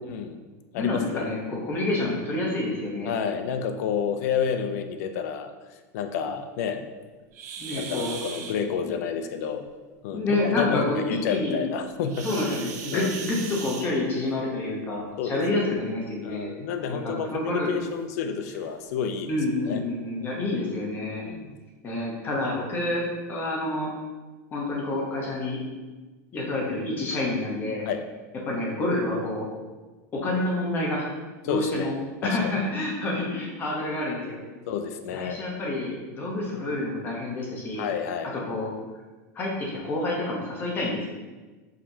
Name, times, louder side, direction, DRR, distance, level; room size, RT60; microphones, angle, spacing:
voice 1, 0.1-0.4 0.7-1.3 3.1-5.5 5.9-6.9 7.7-9.7 10.0-12.3 12.9-13.1 15.2-15.7 16.2-19.3 19.7-19.8 21.1-21.5 27.9-28.0 31.4-31.9 32.2-32.5 34.7-35.4 37.8-38.5, left 7 dB, 65° left, 8 dB, 0.4 m, -30 dB
voice 2, 0.7-3.1 7.6-8.2 10.1-11.0 11.3-11.6 12.2-16.5 16.9-17.7 19.3-21.2 21.8-23.0 23.3-23.9 24.5-25.6 26.3-27.8 28.4-29.5 30.1-31.1 31.4-31.9 32.2-34.4 35.1-37.9 38.4-38.7 39.3-41.1, left 2 dB, 20° left, -3 dB, 0.9 m, -28 dB
sound 1, 7.3-8.6 12.1-14.3 15.6-15.7 16.3-16.4 17.0-17.1 17.9-18.0 18.4-18.6, right 6 dB, 80° right, 0.6 m, -38 dB
4.9 x 3.0 x 2.7 m, 1.3 s
supercardioid pair, 160°, 9 cm